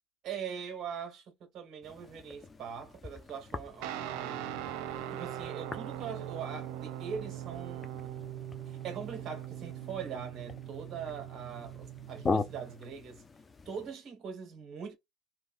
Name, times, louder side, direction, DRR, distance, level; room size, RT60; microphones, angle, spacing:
voice 1, 0.2-4.6 5.1-7.9 8.7-13.2 13.6-14.9, right 7 dB, 50° right, 1.6 m, -42 dB
sound 1, 1.8-13.9, left 3 dB, 25° left, 0.5 m, -42 dB
Guitar, 3.8-12.7, right 11 dB, 75° right, 0.4 m, -41 dB
3.3 x 2.5 x 2.5 m
supercardioid pair, 95°, 0 cm